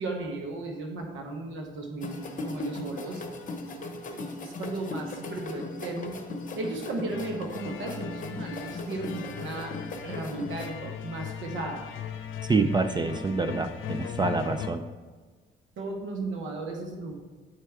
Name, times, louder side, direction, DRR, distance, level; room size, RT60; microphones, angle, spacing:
voice 1, 0.0-3.2 4.1-6.2 6.6-9.7 10.0-11.9 15.8-17.1, right 2 dB, 75° right, 2 dB, 1.0 m, -35 dB
sound 1, 2.0-10.7, left 2 dB, 40° left, 0.9 m, -38 dB
sound 2, 7.1-14.7, left 8 dB, 80° left, 0.6 m, -38 dB
voice 2, 12.5-14.8, right 4 dB, 20° right, 8 dB, 0.4 m, -26 dB
9.3 x 4.4 x 3.5 m, 1.4 s
cardioid pair, 90°, 20 cm